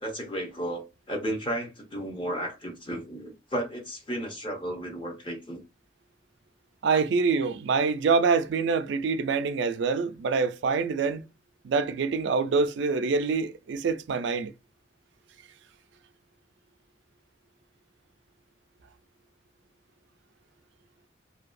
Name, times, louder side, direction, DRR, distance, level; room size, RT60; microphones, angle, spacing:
voice 1, 0.0-5.6 6.9-7.0, right 1 dB, 25° left, 0.8 m, -33 dB
voice 2, 6.8-11.2 11.6-14.5, right 4 dB, 65° right, 0.3 m, -25 dB
2.7 x 2.2 x 2.4 m
head